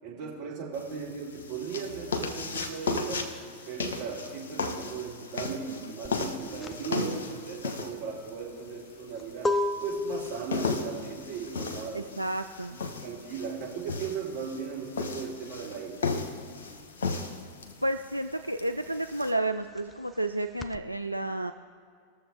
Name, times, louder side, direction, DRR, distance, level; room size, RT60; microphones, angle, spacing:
voice 1, 0.0-3.3 3.7-9.5 9.8-12.1 12.7-16.0, right 6 dB, 45° right, -5 dB, 3.4 m, -37 dB
sound 1, 0.7-19.3, left 4 dB, 60° left, 1.2 m, -36 dB
sound 2, 6.0-16.3 16.6-20.8, left 2 dB, 15° left, 0.5 m, -36 dB
voice 2, 6.9-7.2 11.9-12.8 17.8-21.5, right 1 dB, 85° right, 6 dB, 0.3 m, -31 dB
21.0 x 7.1 x 3.6 m, 2.2 s
figure-of-eight pair, 90°, 0 cm